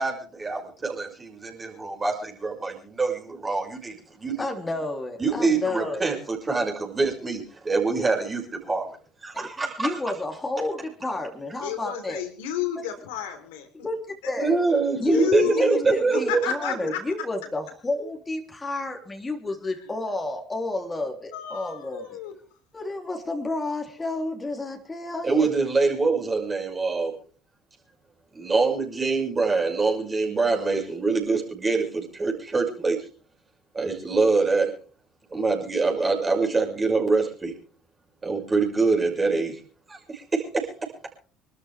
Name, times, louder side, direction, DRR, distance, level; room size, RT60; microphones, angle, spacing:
voice 1, 0.0-4.4 5.2-8.9 9.2-9.9 14.4-16.8 25.2-27.2 28.3-33.0 33.7-34.7 35.3-37.5 38.2-39.6 39.9-40.9, right 3 dB, 25° right, 0 dB, 6.3 m, -25 dB
voice 2, 4.4-6.1 9.3-12.2 13.8-14.6 15.0-22.3 22.7-25.5, left 2 dB, 20° left, 2 dB, 3.3 m, -31 dB
voice 3, 11.6-13.7 15.0-17.0 21.3-22.4, left 8 dB, 70° left, 6 dB, 3.6 m, -31 dB
26.5 x 13.0 x 3.5 m, 0.42 s
hypercardioid pair, 60°, 0 cm